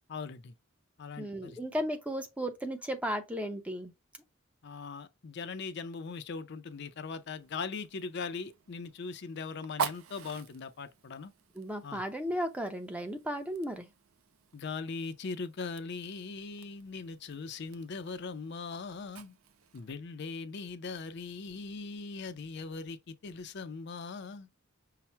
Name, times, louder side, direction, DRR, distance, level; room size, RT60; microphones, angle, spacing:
voice 1, 0.1-0.5 1.0-1.6 4.6-11.3 11.8-12.0 14.5-19.4 19.7-24.5, left 4 dB, 55° left, 0.5 m, -40 dB
voice 2, 1.2-3.9 11.6-13.9, equal, 5° right, 0.6 m, -35 dB
Fire, 6.7-19.9, right 6 dB, 80° right, 0.5 m, -45 dB
5.7 x 2.1 x 4.3 m
head